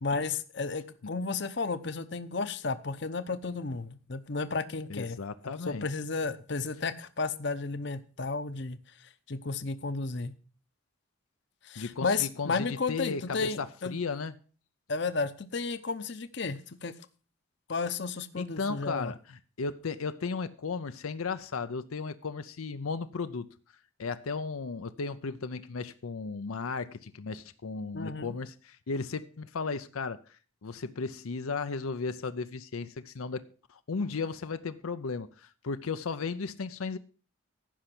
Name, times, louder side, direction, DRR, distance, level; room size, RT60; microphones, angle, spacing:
voice 1, 0.0-5.2 5.6-8.8 9.3-10.3 11.6-13.9 14.9-16.9 17.7-19.1 27.9-28.3, left 4 dB, 55° left, 0.8 m, -33 dB
voice 2, 4.9-5.9 11.8-14.4 18.4-23.5 24.0-33.4 33.7-37.0, left 4 dB, 90° left, 0.6 m, -35 dB
15.0 x 5.8 x 6.0 m
head